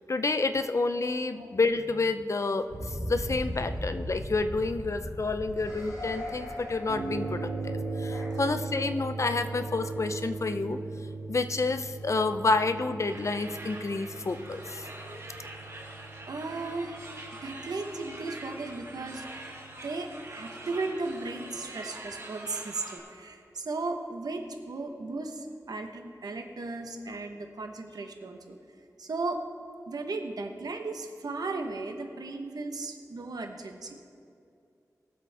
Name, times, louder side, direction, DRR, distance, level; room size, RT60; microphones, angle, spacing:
voice 1, 0.1-10.8 11.3-15.2, left 3 dB, 50° left, 9 dB, 0.6 m, -29 dB
sound 1, 2.7-8.3, equal, 70° left, 3.3 m, -38 dB
sound 2, 6.9-21.4, right 3 dB, 65° right, 3.1 m, -39 dB
sound 3, 13.1-23.0, right 2 dB, 45° right, 2.9 m, -44 dB
voice 2, 16.3-17.0 17.4-19.2 19.8-28.6 29.0-29.4 29.9-34.0, right 3 dB, 80° right, 5 dB, 1.1 m, -36 dB
21.0 x 7.6 x 3.5 m, 2.6 s
wide cardioid pair, 70°, 6 cm